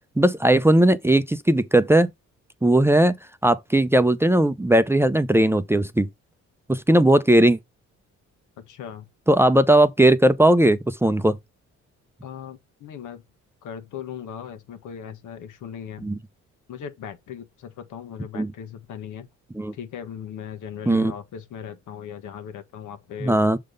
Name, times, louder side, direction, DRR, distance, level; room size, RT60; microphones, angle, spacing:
voice 1, 0.2-2.1 2.6-3.2 3.4-6.1 6.7-7.6 9.3-11.4 16.0-16.2 18.3-18.5 19.5-19.7 20.9-21.1 23.2-23.6, right 1 dB, 10° right, 0.6 m, -18 dB
voice 2, 8.6-9.1 12.2-13.2 13.6-16.1 16.7-19.3 19.7-23.4, left 8 dB, 80° left, 1.4 m, -38 dB
6.6 x 3.7 x 5.2 m
cardioid pair, 90°, 30 cm